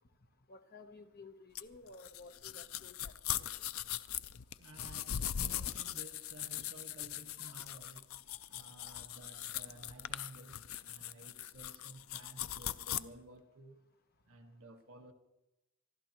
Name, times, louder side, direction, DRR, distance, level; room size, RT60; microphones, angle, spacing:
voice 1, 0.5-3.7 7.4-7.6, left 3 dB, 45° left, 1.0 m, -55 dB
sound 1, 1.6-13.0, left 11 dB, 80° left, 0.5 m, -40 dB
voice 2, 4.6-8.2 8.5-13.8 14.3-15.1, right 1 dB, 85° right, 1.5 m, -54 dB
25.5 x 12.5 x 3.0 m
head